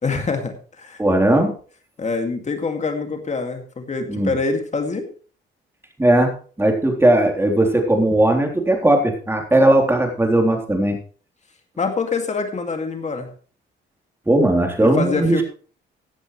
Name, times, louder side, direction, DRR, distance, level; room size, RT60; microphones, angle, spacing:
voice 1, 0.0-1.0 2.0-5.1 11.8-13.3 14.8-15.4, left 4 dB, 35° left, 5 dB, 2.3 m, -25 dB
voice 2, 1.0-1.5 4.1-4.3 6.0-6.3 6.6-11.0 14.3-15.4, right 1 dB, 10° right, 3 dB, 3.6 m, -17 dB
16.0 x 10.5 x 3.2 m, 0.41 s
cardioid pair, 90°, 20 cm